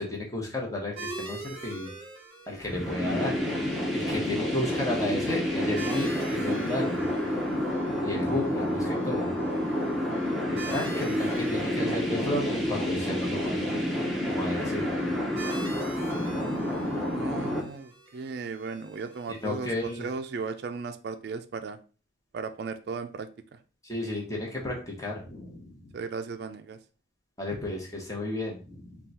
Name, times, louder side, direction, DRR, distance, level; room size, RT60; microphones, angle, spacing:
voice 1, 0.0-1.9 2.5-3.4 3.9-7.0 8.0-9.3 10.5-13.6 14.3-14.9 19.4-20.1 23.8-25.9 27.4-29.0, left 1 dB, 20° left, 1.0 m, -33 dB
sound 1, 1.0-20.1, right 3 dB, 30° right, 1.1 m, -45 dB
sound 2, 2.6-17.6, left 1 dB, ahead, 0.7 m, -29 dB
voice 2, 17.1-21.8 22.3-23.6 25.9-26.8, right 5 dB, 60° right, 0.3 m, -36 dB
3.7 x 2.3 x 4.0 m
head